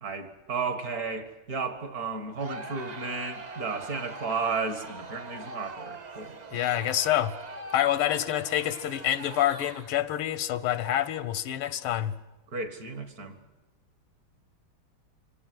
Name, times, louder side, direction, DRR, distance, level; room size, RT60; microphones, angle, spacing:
voice 1, 0.0-6.4 12.5-13.3, right 4 dB, 45° right, 2.2 m, -33 dB
Crowd, 2.4-10.1, right 3 dB, 65° right, 0.4 m, -42 dB
voice 2, 6.5-7.3 7.7-12.1, left 12 dB, 85° left, 1.8 m, -27 dB
25.5 x 18.5 x 7.8 m
omnidirectional pair, 2.3 m